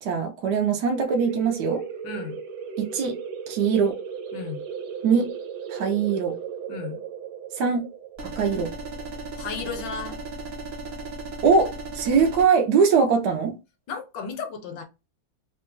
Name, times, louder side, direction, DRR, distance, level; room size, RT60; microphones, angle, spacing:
voice 1, 0.0-1.8 2.8-3.2 3.5-4.0 5.0-5.3 5.7-6.4 7.6-7.9 8.2-8.7 11.4-13.6, right 5 dB, 70° right, 1.2 m, -22 dB
sound 1, 0.9-10.3, right 7 dB, 90° right, 1.5 m, -36 dB
voice 2, 2.0-2.4 4.3-4.6 6.7-7.0 9.4-10.2 13.9-14.8, left 5 dB, 70° left, 1.3 m, -34 dB
sound 2, 8.2-12.5, right 3 dB, 45° right, 0.9 m, -36 dB
3.3 x 2.1 x 3.0 m
omnidirectional pair, 2.1 m